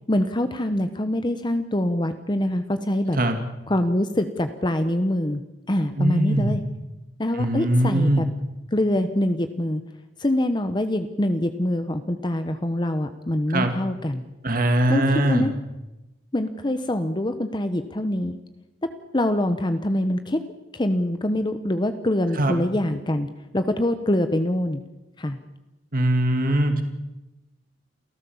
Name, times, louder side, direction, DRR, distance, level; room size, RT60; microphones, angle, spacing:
voice 1, 0.1-3.2 3.7-5.4 5.7-6.6 7.2-8.3 8.7-9.8 10.2-14.2 14.9-15.5 16.3-18.4 19.1-20.4 20.7-24.8 25.2-25.4, left 1 dB, 25° left, 9 dB, 1.0 m, -24 dB
voice 2, 6.0-6.5 7.4-8.2 13.5-13.7 14.4-15.4 22.4-22.6 25.9-26.8, right 1 dB, 50° right, 6 dB, 2.3 m, -21 dB
28.5 x 14.0 x 7.2 m, 1.0 s
head